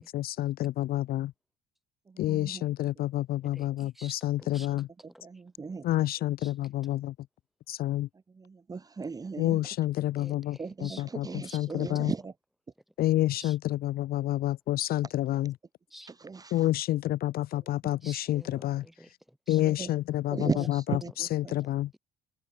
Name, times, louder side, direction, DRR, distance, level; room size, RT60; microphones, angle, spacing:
voice 1, 0.0-1.3 2.2-4.9 5.8-7.1 7.7-8.1 9.4-12.1 13.0-15.5 16.5-18.8 19.5-21.9, left 14 dB, 55° left, 0.7 m, -29 dB
voice 2, 2.1-2.6 5.2-5.9 8.3-9.6 10.6-12.3 16.1-16.7 17.8-17.9 19.6-19.9 20.3-21.5, right 4 dB, 20° right, 1.7 m, -36 dB
voice 3, 3.4-4.7 5.1-5.4 6.4-6.5 10.2-11.8 13.4-13.6 15.9-16.1 17.9-19.6, equal, ahead, 5.5 m, -51 dB
open air
cardioid pair, 120°, 19 cm